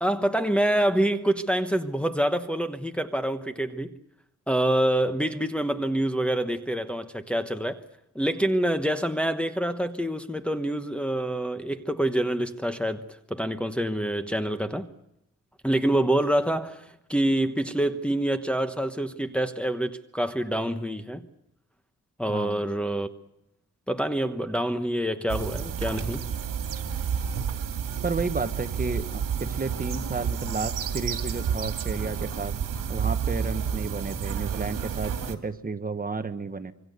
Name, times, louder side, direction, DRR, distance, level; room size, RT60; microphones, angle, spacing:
voice 1, 0.0-3.9 4.5-7.8 8.1-14.9 15.6-21.3 22.2-23.1 23.9-26.3, right 1 dB, 5° left, 1.1 m, -26 dB
voice 2, 22.3-22.6 28.0-32.5 32.9-36.7, right 4 dB, 25° right, 1.3 m, -32 dB
sound 1, 25.3-35.3, right 7 dB, 80° right, 2.5 m, -30 dB
26.0 x 24.0 x 6.7 m
wide cardioid pair, 125°, 32 cm